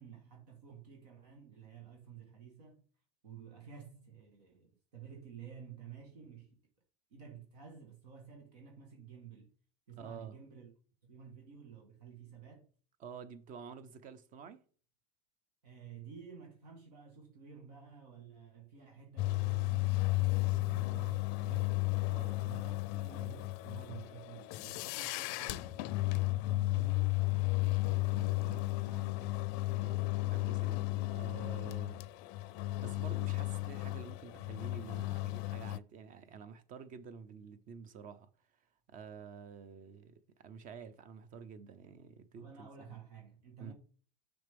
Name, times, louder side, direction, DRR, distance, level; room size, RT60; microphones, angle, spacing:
voice 1, 0.0-2.8 3.2-6.6 7.1-9.5 9.9-10.7 11.0-12.7 15.6-22.0 22.4-27.2 27.6-29.4 42.4-43.7, right 7 dB, 85° right, 1.6 m, -52 dB
voice 2, 10.0-10.4 13.0-14.6 22.1-22.4 29.7-32.0 32.8-38.3 38.9-42.7 43.6-43.7, right 6 dB, 40° right, 0.8 m, -49 dB
sound 1, 19.2-35.8, left 21 dB, 55° left, 0.4 m, -34 dB
6.3 x 5.1 x 3.5 m
hypercardioid pair, 105°, 20 cm